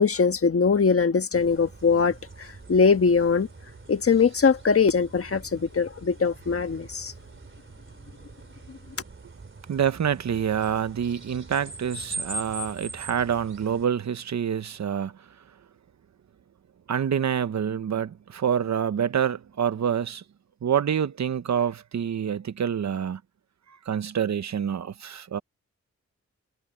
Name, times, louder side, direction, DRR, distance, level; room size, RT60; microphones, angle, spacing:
voice 1, 0.0-3.5 3.9-7.1, left 5 dB, 50° left, 1.4 m, -22 dB
sound 1, 1.3-13.9, right 2 dB, 45° right, 3.4 m, -42 dB
voice 2, 9.7-15.1 16.9-20.2 20.6-23.2 23.9-25.4, right 8 dB, 70° right, 0.9 m, -27 dB
cardioid pair, 80°, 29 cm